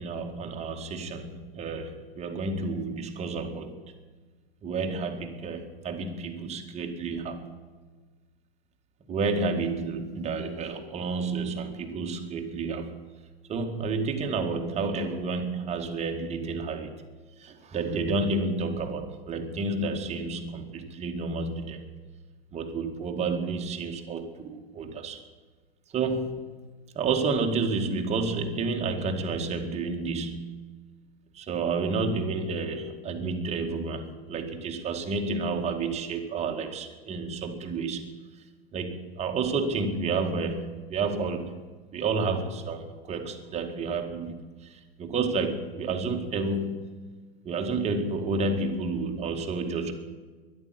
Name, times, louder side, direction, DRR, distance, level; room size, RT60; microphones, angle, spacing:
voice 1, 0.0-3.8 4.6-7.5 9.1-13.0 13.5-17.0 17.4-21.8 22.5-25.2 25.9-26.5 26.9-30.7 31.3-38.1 38.7-41.5 41.9-47.0 47.4-49.9, right 3 dB, 20° right, 4 dB, 2.0 m, -30 dB
13.0 x 11.5 x 9.7 m, 1.4 s
hypercardioid pair, 115°, 31 cm